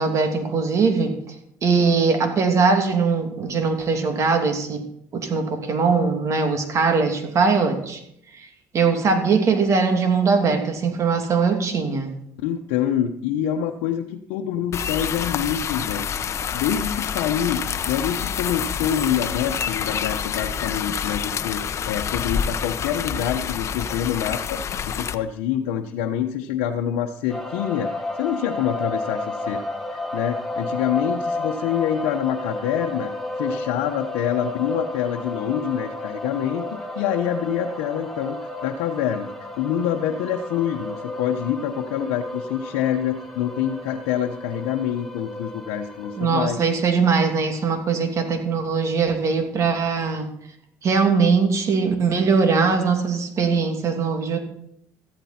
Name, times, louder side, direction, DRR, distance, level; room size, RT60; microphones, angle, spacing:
voice 1, 0.0-1.3 1.6-4.8 5.1-8.0 8.3-8.5 8.7-12.1 46.2-50.3 50.8-54.4, right 5 dB, 50° right, 5 dB, 2.8 m, -21 dB
voice 2, 12.4-24.6 24.9-27.9 28.2-29.6 29.9-33.1 33.4-46.6, left 9 dB, 85° left, 2 dB, 1.0 m, -26 dB
sound 1, 14.7-25.2, left 7 dB, 45° left, 0.9 m, -27 dB
sound 2, 27.3-46.3, left 2 dB, ahead, 2.6 m, -32 dB
14.5 x 13.5 x 4.4 m, 0.71 s
supercardioid pair, 80°, 7 cm